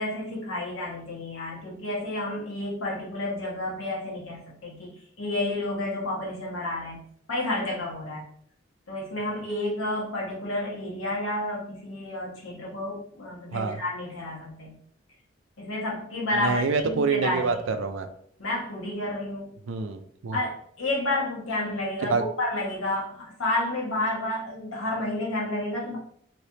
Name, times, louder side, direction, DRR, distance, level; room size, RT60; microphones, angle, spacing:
voice 1, 0.0-4.9 5.2-7.0 7.3-8.2 8.9-14.8 15.6-17.5 18.4-19.5 20.3-26.0, left 1 dB, 90° left, -3 dB, 1.2 m, -30 dB
voice 2, 16.3-18.1 19.7-20.4 22.0-22.2, right 4 dB, 75° right, 7 dB, 0.4 m, -27 dB
3.2 x 3.0 x 2.8 m, 0.64 s
head